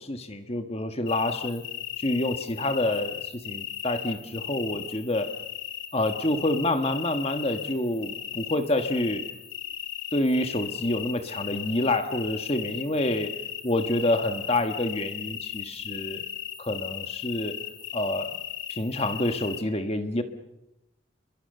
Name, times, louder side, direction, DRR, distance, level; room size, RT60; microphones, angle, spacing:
voice 1, 0.0-1.6 2.0-5.3 5.9-9.2 10.1-13.3 13.6-16.2 16.6-17.5 17.9-18.4 18.7-20.2, left 1 dB, 30° left, 7 dB, 1.5 m, -27 dB
sound 1, 1.1-19.6, left 10 dB, 75° left, 3.3 m, -37 dB
30.0 x 22.5 x 6.7 m, 0.86 s
head